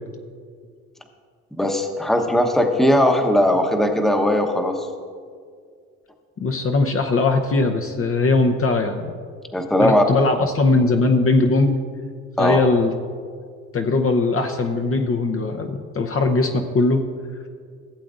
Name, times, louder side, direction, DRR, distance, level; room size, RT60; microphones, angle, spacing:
voice 1, 1.5-4.9 9.5-10.0 10.4-10.5 12.4-12.6, left 1 dB, ahead, 4 dB, 1.0 m, -19 dB
voice 2, 6.4-9.1 9.8-11.8 12.4-12.9 13.7-17.0, left 3 dB, 40° left, 4 dB, 0.8 m, -20 dB
16.0 x 7.6 x 2.5 m, 2.1 s
supercardioid pair, 65°, 36 cm